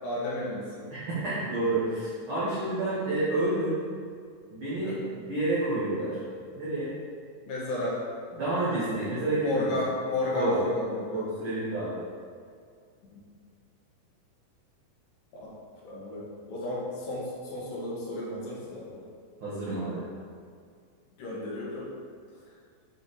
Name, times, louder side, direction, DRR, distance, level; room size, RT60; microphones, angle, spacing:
voice 1, 0.0-0.9 4.8-5.1 7.5-8.0 9.4-11.3 13.1-13.2 15.4-15.5 15.8-19.0 21.2-21.9, left 2 dB, 70° left, -6 dB, 3.0 m, -33 dB
voice 2, 0.9-3.8 4.5-5.0 5.3-6.2 6.6-6.9 8.3-9.7 10.3-10.6 11.1-12.0 19.4-20.0, right 2 dB, 70° right, -10 dB, 1.2 m, -29 dB
7.7 x 3.4 x 4.1 m, 2.1 s
omnidirectional pair, 4.4 m